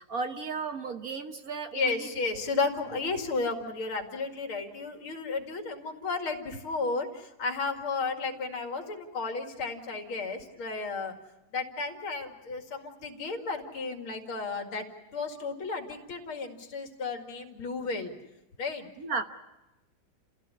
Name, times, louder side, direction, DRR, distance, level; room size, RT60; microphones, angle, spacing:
voice 1, 0.0-2.1 2.3-2.4 19.0-19.2, right 4 dB, 50° right, 7 dB, 1.4 m, -34 dB
voice 2, 1.7-11.2 11.5-14.9 15.1-18.1 18.6-18.9, left 4 dB, 85° left, 4 dB, 3.0 m, -33 dB
29.5 x 16.0 x 9.8 m, 1.0 s
omnidirectional pair, 2.2 m